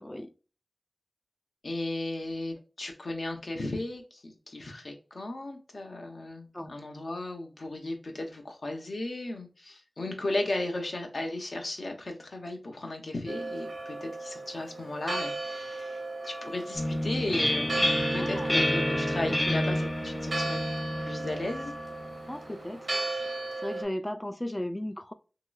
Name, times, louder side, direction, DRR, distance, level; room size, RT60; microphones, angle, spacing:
voice 1, 0.0-0.3 6.5-6.7 18.1-18.5 22.3-23.0 23.6-25.1, left 1 dB, 20° left, 0.3 m, -36 dB
voice 2, 1.6-17.8 18.1-20.6 21.0-21.7, left 2 dB, 75° left, 0.8 m, -35 dB
Church bell, 13.3-23.8, right 2 dB, 80° right, 0.9 m, -36 dB
sound 1, 16.7-22.3, left 1 dB, 45° left, 1.1 m, -29 dB
3.0 x 2.9 x 2.3 m
wide cardioid pair, 60°, 0 cm